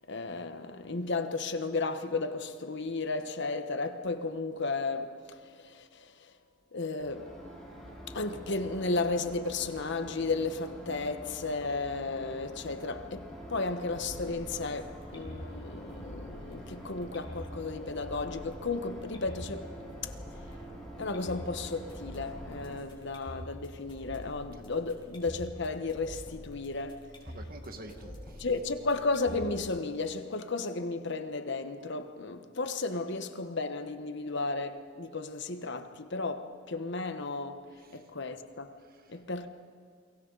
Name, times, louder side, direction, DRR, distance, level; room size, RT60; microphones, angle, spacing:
voice 1, 0.1-6.3 6.7-7.3 8.1-19.7 20.0-20.1 21.0-27.1 28.4-38.8 39.1-39.5, left 3 dB, 65° left, 1.1 m, -34 dB
sound 1, 7.0-22.8, equal, ahead, 5.5 m, -46 dB
sound 2, 13.5-29.5, equal, 25° left, 5.6 m, -46 dB
voice 2, 27.2-28.6 32.9-33.0 37.8-38.0 38.8-39.1, right 2 dB, 50° right, 1.7 m, -49 dB
30.0 x 23.5 x 4.0 m
head